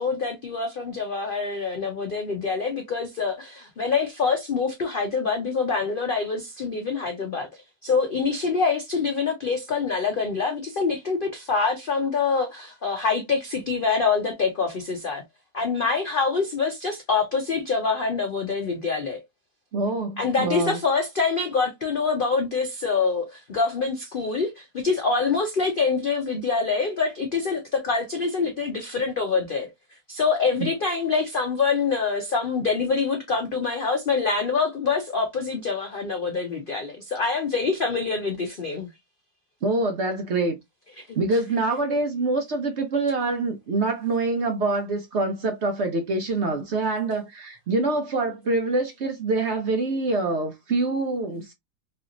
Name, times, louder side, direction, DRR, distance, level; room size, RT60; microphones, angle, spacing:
voice 1, 0.0-15.2 15.5-19.2 20.2-29.7 30.1-38.9 41.0-41.6, left 4 dB, 65° left, 0.5 m, -25 dB
voice 2, 19.7-20.8 30.6-30.7 39.6-40.6 41.2-51.5, right 3 dB, 60° right, 0.7 m, -25 dB
3.2 x 2.9 x 2.4 m
omnidirectional pair, 1.7 m